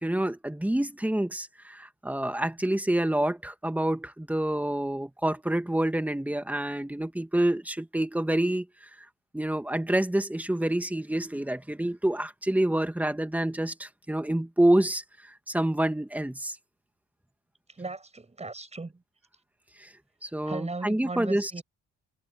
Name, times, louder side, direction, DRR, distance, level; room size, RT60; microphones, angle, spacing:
voice 1, 0.0-8.6 9.3-16.6 19.8-19.9 20.2-21.6, right 1 dB, 5° right, 1.7 m, -27 dB
voice 2, 17.7-19.0 20.4-21.6, right 3 dB, 20° right, 6.6 m, -37 dB
cardioid pair, 90°, 30 cm